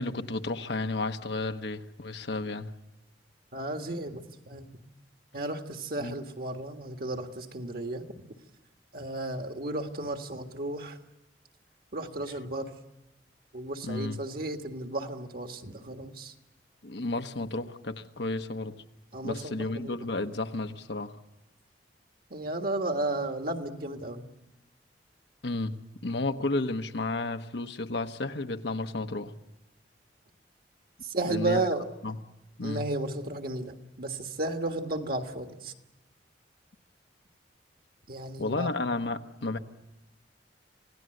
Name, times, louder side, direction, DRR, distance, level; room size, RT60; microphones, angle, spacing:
voice 1, 0.0-2.7 6.0-6.1 13.8-14.2 16.8-18.7 19.2-21.2 25.4-25.7 26.0-29.3 31.3-31.6 32.0-32.2 32.6-32.9 38.4-39.6, left 2 dB, 70° left, 7 dB, 1.1 m, -32 dB
voice 2, 3.5-4.8 5.3-8.1 8.9-11.0 11.9-12.7 13.5-16.3 19.1-20.1 22.3-24.3 31.0-31.8 32.6-35.7 38.1-38.7, right 2 dB, 55° right, 5 dB, 1.7 m, -33 dB
27.0 x 17.5 x 7.8 m, 0.99 s
head